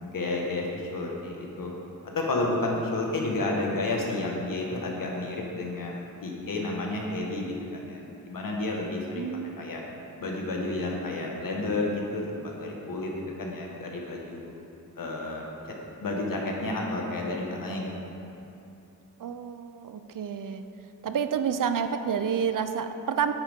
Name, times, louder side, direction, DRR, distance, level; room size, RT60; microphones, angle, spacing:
voice 1, 0.0-1.7 2.1-9.3 9.6-9.8 10.2-13.1 13.4-14.5 15.0-15.4 16.0-18.1, left 2 dB, 70° left, -1 dB, 1.6 m, -31 dB
voice 2, 9.1-9.6 19.2-20.6 21.0-23.3, right 7 dB, 65° right, 9 dB, 0.6 m, -29 dB
9.7 x 9.6 x 3.7 m, 2.8 s
wide cardioid pair, 125°, 34 cm